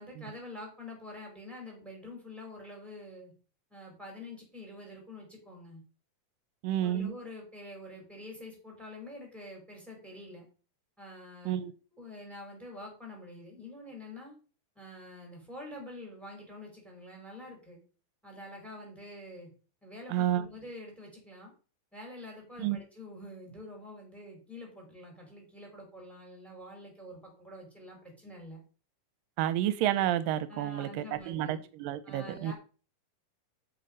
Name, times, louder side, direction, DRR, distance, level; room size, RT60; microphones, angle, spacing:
voice 1, 0.0-3.3 3.7-5.8 6.8-10.4 11.0-11.5 11.9-14.3 14.7-17.8 18.2-19.5 19.8-21.5 21.9-28.6 30.5-31.6 32.0-32.5, left 1 dB, ahead, -1 dB, 5.0 m, -46 dB
voice 2, 6.6-7.1 11.5-11.7 20.1-20.5 22.6-22.8 29.4-32.5, right 12 dB, 85° right, 14 dB, 2.3 m, -30 dB
8.4 x 7.6 x 5.4 m, 0.38 s
omnidirectional pair, 4.0 m